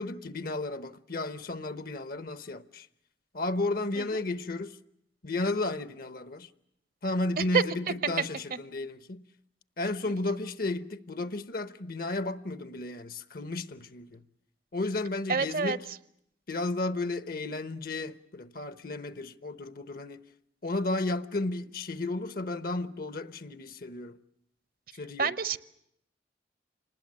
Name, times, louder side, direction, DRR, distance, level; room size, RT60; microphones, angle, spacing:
voice 1, 0.0-2.9 3.3-4.8 5.2-6.5 7.0-9.2 9.8-14.2 14.7-15.8 16.5-20.2 20.6-24.2 24.9-25.3, left 2 dB, 55° left, 1.0 m, -33 dB
voice 2, 15.3-15.8 25.2-25.6, right 5 dB, 50° right, 0.8 m, -27 dB
27.0 x 20.0 x 7.5 m
head